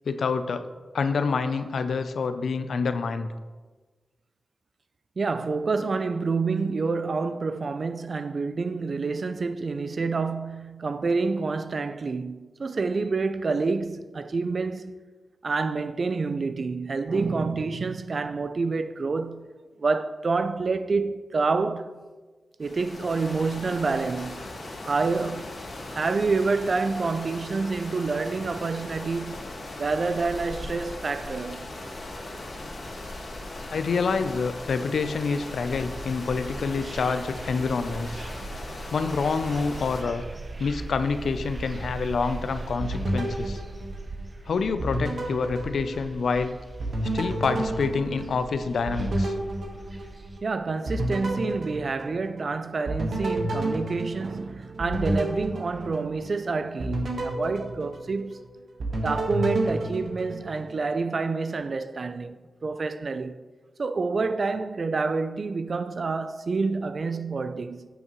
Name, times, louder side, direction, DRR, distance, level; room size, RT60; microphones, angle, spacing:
voice 1, 0.1-0.7 0.9-3.3 33.7-38.2 38.9-40.2 40.6-43.6 44.5-46.6 47.1-49.3, left 5 dB, 80° left, 0.5 m, -27 dB
voice 2, 5.2-15.0 15.4-19.5 19.8-22.0 22.6-24.4 24.8-25.6 25.9-29.4 29.8-31.7 50.4-58.4 59.0-63.4 63.8-67.9, right 4 dB, 60° right, 0.4 m, -28 dB
sound 1, 22.6-40.0, left 2 dB, 65° left, 2.0 m, -38 dB
sound 2, 34.9-50.4, right 3 dB, 45° right, 1.0 m, -40 dB
sound 3, 42.8-44.4 44.8-46.4 46.8-50.5 50.9-52.5 52.9-56.3 56.8-58.4 58.8-60.8, right 1 dB, 75° right, 1.4 m, -30 dB
9.2 x 8.1 x 3.1 m
cardioid pair, 50°, 0 cm